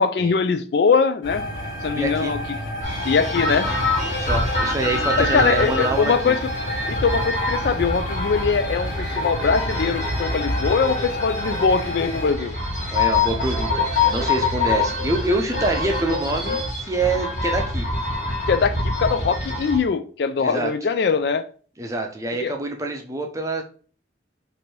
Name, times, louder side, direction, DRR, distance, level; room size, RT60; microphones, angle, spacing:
voice 1, 0.0-1.4 1.8-2.4 3.0-3.7 5.2-6.4 6.9-12.5 18.5-21.5 22.4-22.5, left 5 dB, 60° left, 0.3 m, -22 dB
sound 1, 1.2-12.3, left 1 dB, 85° left, 1.2 m, -31 dB
voice 2, 1.9-2.3 4.2-6.3 12.9-17.9 20.4-20.7 21.8-23.6, right 2 dB, 15° right, 0.6 m, -26 dB
sound 2, 2.8-19.8, left 2 dB, 45° left, 1.6 m, -25 dB
3.2 x 2.6 x 4.4 m
head